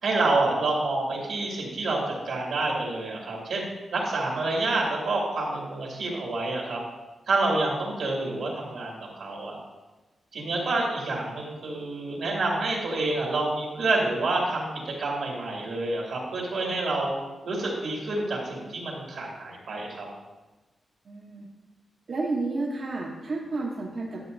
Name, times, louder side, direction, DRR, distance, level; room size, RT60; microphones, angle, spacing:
voice 1, 0.0-3.6 3.9-6.8 7.3-9.6 10.3-14.7 15.0-17.1 17.4-20.1, right 2 dB, 75° right, -3 dB, 2.4 m, -28 dB
voice 2, 21.0-21.5 22.1-24.3, right 3 dB, 45° right, -3 dB, 0.9 m, -31 dB
11.0 x 7.4 x 2.6 m, 1.1 s
wide cardioid pair, 160°, 0 cm